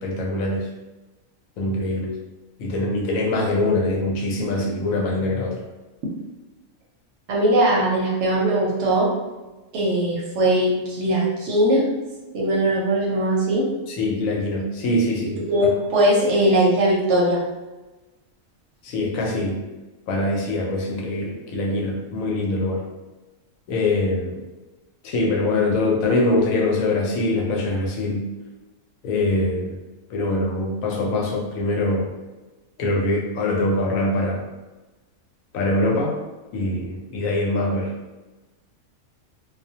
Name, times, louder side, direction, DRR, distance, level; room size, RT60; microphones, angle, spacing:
voice 1, 0.0-0.7 1.6-2.1 2.6-5.6 13.9-15.7 18.8-19.6 20.1-22.8 23.7-24.4 25.0-28.2 29.0-29.8 30.1-32.1 32.8-34.4 35.5-36.2 36.5-37.9, left 2 dB, 75° left, -1 dB, 1.0 m, -23 dB
voice 2, 7.3-9.1 9.7-11.8 12.3-13.7 15.5-17.4, right 1 dB, 65° right, -3 dB, 0.8 m, -20 dB
2.3 x 2.1 x 2.7 m, 1.1 s
omnidirectional pair, 1.5 m